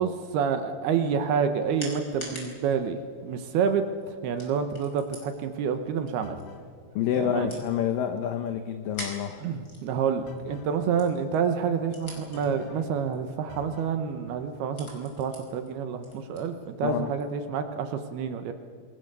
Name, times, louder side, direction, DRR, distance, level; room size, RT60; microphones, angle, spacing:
voice 1, 0.0-6.4 7.2-7.6 9.4-18.5, right 7 dB, 70° right, 7 dB, 2.7 m, -28 dB
sound 1, 1.0-17.4, left 1 dB, 20° left, 4.8 m, -48 dB
sound 2, 6.2-6.7 10.3-10.8 12.3-13.0 13.5-14.0, left 5 dB, 65° left, 3.2 m, -45 dB
voice 2, 7.0-9.5 16.8-17.1, left 9 dB, 85° left, 8 dB, 1.9 m, -28 dB
27.0 x 20.5 x 6.8 m, 2.1 s
omnidirectional pair, 5.3 m